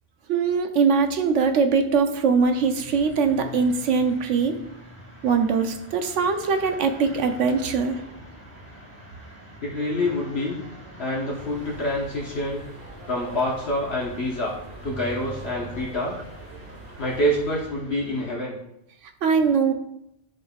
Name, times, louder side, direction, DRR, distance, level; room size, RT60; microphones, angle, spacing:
voice 1, 0.3-4.6 5.2-8.0 19.2-19.7, right 5 dB, 85° right, 6 dB, 1.1 m, -22 dB
sound 1, 2.5-18.3, equal, 10° left, 2.7 m, -45 dB
voice 2, 9.6-10.6 11.0-12.6 13.0-14.6 14.8-16.2 17.0-18.6, left 1 dB, 60° left, -4 dB, 1.4 m, -26 dB
sound 2, 11.3-17.7, right 2 dB, 55° right, 1.6 m, -44 dB
10.5 x 5.3 x 2.4 m, 0.80 s
omnidirectional pair, 1.2 m